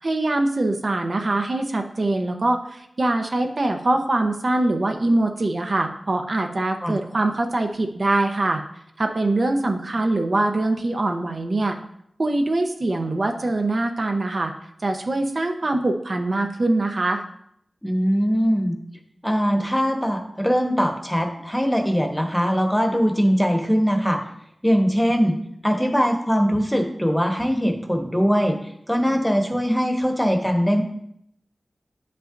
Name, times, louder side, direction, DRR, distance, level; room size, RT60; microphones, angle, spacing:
voice 1, 0.0-8.6 9.0-11.8 12.2-14.5 14.8-17.2, right 2 dB, 55° right, 4 dB, 0.7 m, -23 dB
voice 2, 17.8-18.8 19.2-24.2 24.6-25.3 25.6-30.8, equal, 5° left, 3 dB, 1.1 m, -21 dB
10.5 x 5.5 x 2.6 m, 0.72 s
wide cardioid pair, 70°, 0 cm